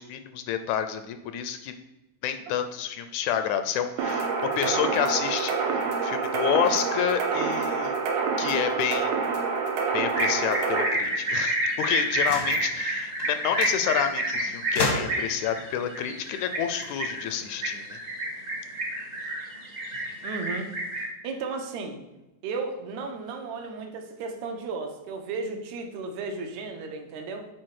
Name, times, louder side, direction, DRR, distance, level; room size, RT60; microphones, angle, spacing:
voice 1, 0.0-1.7 2.2-8.0 8.4-9.1 9.9-18.0, left 9 dB, 80° left, 9 dB, 1.8 m, -29 dB
sound 1, 4.0-10.8, right 5 dB, 90° right, 2.3 m, -27 dB
sound 2, 10.1-21.1, right 1 dB, 45° right, 0.5 m, -29 dB
sound 3, 12.2-12.7 13.2-13.3 13.6-13.8 14.8-15.4 16.6-17.7, left 2 dB, 60° left, 1.0 m, -31 dB
voice 2, 20.2-20.7 21.2-22.0 22.4-27.5, right 4 dB, 75° right, 5 dB, 2.1 m, -34 dB
7.6 x 4.5 x 4.7 m, 0.97 s
omnidirectional pair, 3.4 m